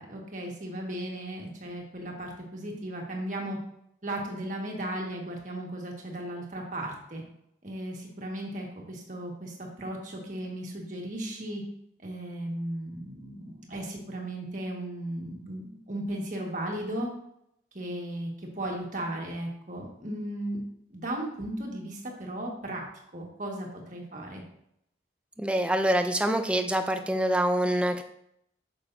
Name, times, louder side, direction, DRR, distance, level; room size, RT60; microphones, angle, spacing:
voice 1, 0.0-3.6 4.0-7.2 7.6-11.6 12.0-17.1 17.7-20.6 20.9-22.9 23.1-24.4, right 1 dB, 45° right, 0 dB, 1.7 m, -36 dB
voice 2, 25.4-28.0, right 1 dB, 5° right, 6 dB, 0.5 m, -25 dB
8.6 x 7.0 x 2.7 m, 0.75 s
head